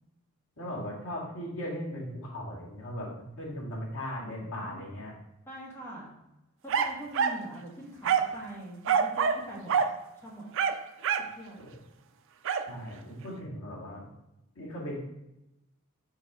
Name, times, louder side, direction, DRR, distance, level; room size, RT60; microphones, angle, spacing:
voice 1, 0.6-5.1 12.7-14.1 14.6-15.0, equal, 75° left, -5 dB, 2.1 m, -38 dB
voice 2, 4.3-4.9 5.5-6.1 6.6-9.8 10.2-10.4 11.3-11.6, right 1 dB, 10° left, -5 dB, 1.8 m, -43 dB
sound 1, 6.7-7.4 8.0-8.4 8.9-9.4 9.7-9.9 10.5-11.3 12.5-12.7, right 6 dB, 60° right, 0.4 m, -26 dB
4.8 x 4.7 x 4.7 m, 0.90 s
head